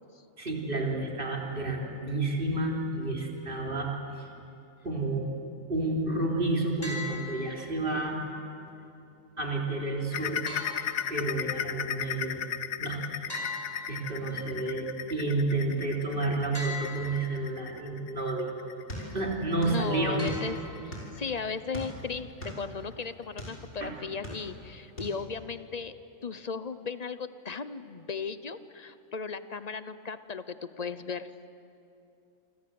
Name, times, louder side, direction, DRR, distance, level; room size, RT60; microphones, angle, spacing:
voice 1, 0.4-3.9 4.8-5.3 5.7-8.2 9.4-10.4 11.1-12.4 12.8-13.0 13.9-18.5 18.9-20.2 23.8-23.9, right 2 dB, 40° right, -1 dB, 3.8 m, -30 dB
sound 1, 6.8-7.8 10.5-11.5 13.3-14.5 16.5-17.5 20.2-21.1, left 2 dB, 15° left, 5.5 m, -40 dB
sound 2, 10.1-21.4 21.8-22.0 22.4-22.5 23.0-23.1, left 9 dB, 85° left, 1.2 m, -36 dB
sound 3, 18.9-19.8 20.1-21.2 21.7-23.6 24.0-24.7 25.0-25.2, equal, 55° left, 6.2 m, -40 dB
voice 2, 19.6-20.6 20.9-26.0 26.2-31.3, left 5 dB, 35° left, 12 dB, 0.8 m, -36 dB
28.0 x 25.5 x 7.9 m, 2.7 s
omnidirectional pair, 1.4 m